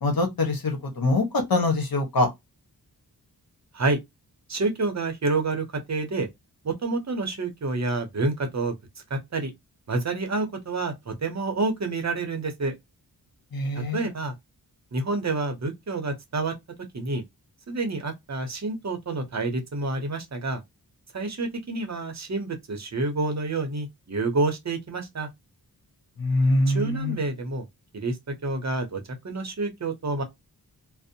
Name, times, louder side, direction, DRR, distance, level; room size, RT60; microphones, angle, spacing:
voice 1, 0.0-2.3 13.5-14.1 26.2-27.2, left 2 dB, 65° left, 1.0 m, -24 dB
voice 2, 4.5-6.3 6.6-8.7 9.1-9.5 9.9-12.7 13.9-14.3 14.9-16.5 16.9-17.2 17.7-20.6 21.1-25.3 26.7-27.6 27.9-30.2, right 3 dB, 45° right, 0.7 m, -28 dB
2.5 x 2.0 x 2.6 m
wide cardioid pair, 105°, 38 cm